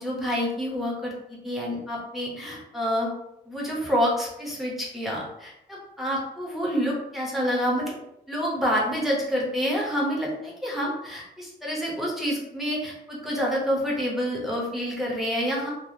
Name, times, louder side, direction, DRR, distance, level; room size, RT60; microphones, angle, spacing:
voice 1, 0.0-3.1 3.5-8.0 8.3-15.7, equal, ahead, -4 dB, 0.7 m, -28 dB
3.3 x 2.0 x 2.6 m, 0.83 s
cardioid pair, 155°, 18 cm